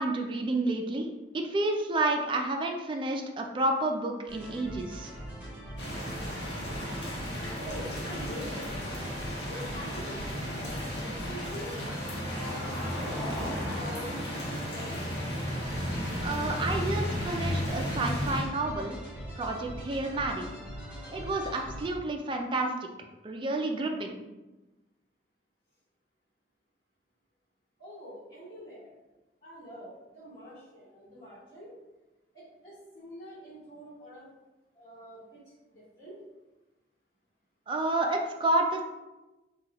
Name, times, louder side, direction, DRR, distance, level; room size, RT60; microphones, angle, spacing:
voice 1, 0.0-5.1 16.2-19.0 19.4-20.5 21.1-22.7 23.2-24.2 37.7-38.8, right 2 dB, 30° right, 3 dB, 0.4 m, -30 dB
sound 1, 4.3-21.9, equal, 10° right, 1.2 m, -43 dB
sound 2, 5.8-18.4, equal, 70° left, 0.9 m, -34 dB
voice 2, 7.5-9.1 9.5-11.7 12.4-15.1 27.8-28.9 29.4-31.7 32.3-34.3 34.7-35.4 35.7-36.2, equal, 35° left, -10 dB, 1.5 m, -45 dB
Car passing by, 9.4-17.4, left 1 dB, 15° left, 0.7 m, -43 dB
4.2 x 2.3 x 2.9 m, 1.1 s
head